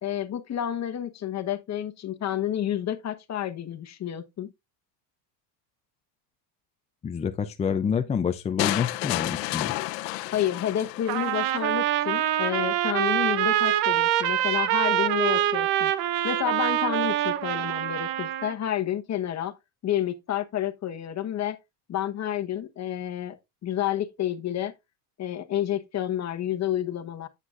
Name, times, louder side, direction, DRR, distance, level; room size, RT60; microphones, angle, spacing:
voice 1, 0.0-4.5 10.3-15.9 16.2-19.5 19.8-21.6 21.9-23.4 23.6-24.7 25.2-27.3, left 11 dB, 35° left, 1.2 m, -30 dB
voice 2, 7.0-9.7, left 6 dB, 15° left, 0.4 m, -27 dB
sound 1, 8.6-11.6, left 19 dB, 80° left, 0.9 m, -31 dB
Trumpet, 11.1-18.5, right 12 dB, 75° right, 1.0 m, -25 dB
9.6 x 8.2 x 2.5 m
supercardioid pair, 110°, 48 cm